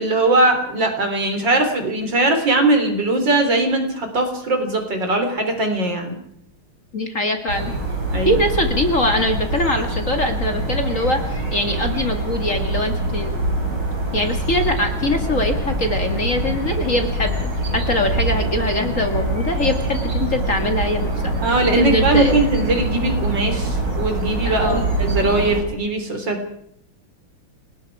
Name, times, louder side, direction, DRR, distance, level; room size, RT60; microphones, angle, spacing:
voice 1, 0.0-6.1 8.1-8.4 21.4-26.4, right 2 dB, 55° right, 5 dB, 4.4 m, -20 dB
voice 2, 6.9-7.8 8.3-13.3 14.1-17.4 17.7-21.3 21.8-22.4 24.4-24.9, left 1 dB, 35° left, 5 dB, 2.3 m, -22 dB
sound 1, 7.5-25.6, right 2 dB, 70° right, 6.1 m, -24 dB
29.0 x 20.0 x 4.9 m, 0.71 s
omnidirectional pair, 2.4 m